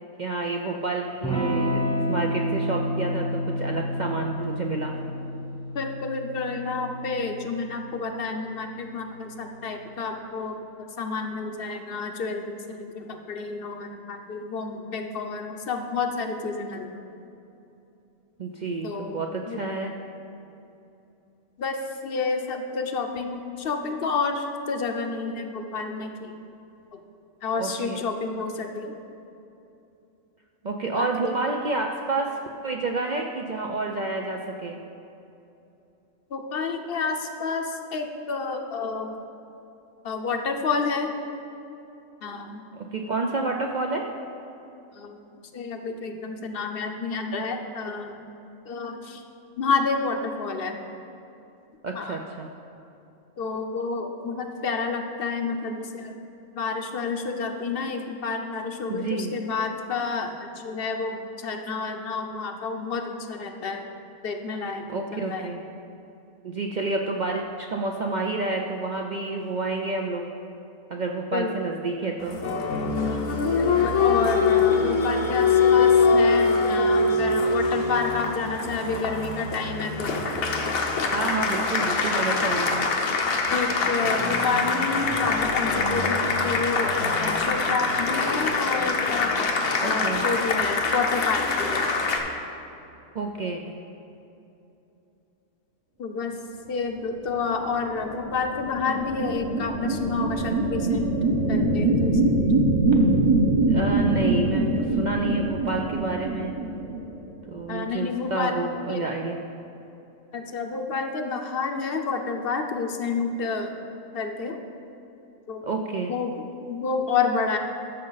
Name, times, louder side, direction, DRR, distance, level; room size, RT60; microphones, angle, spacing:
voice 1, 0.2-1.8 2.1-4.9 18.4-19.9 27.6-28.0 30.6-34.8 42.7-44.1 51.8-52.5 58.9-59.3 64.9-65.6 66.4-70.3 70.9-72.4 81.1-82.9 89.8-90.2 93.1-93.6 103.7-106.5 107.5-109.4 115.6-116.1, right 3 dB, 60° right, 1 dB, 0.4 m, -29 dB
Electric guitar / Strum, 1.2-9.5, equal, 5° left, 0.8 m, -30 dB
voice 2, 5.7-16.9 18.8-19.6 21.6-26.5 26.9-27.0 27.4-29.0 30.9-31.3 36.3-39.1 40.0-41.1 42.2-42.6 44.9-45.2 45.5-48.2 48.6-49.2 49.6-50.8 51.9-52.2 53.4-56.2 56.5-63.8 64.2-65.5 71.3-71.5 73.5-80.3 81.1-81.3 83.5-89.4 89.8-91.9 96.0-96.4 96.7-101.1 101.5-102.4 107.7-108.6 108.9-109.0 110.3-113.8 114.1-114.6 115.5-115.7 116.1-117.6, left 4 dB, 55° left, 5 dB, 0.8 m, -29 dB
Applause, 72.2-92.2, left 4 dB, 85° left, 1.4 m, -23 dB
sound 1, 97.7-107.5, right 2 dB, 25° right, 0.8 m, -23 dB
13.5 x 6.4 x 4.0 m, 2.8 s
omnidirectional pair, 1.4 m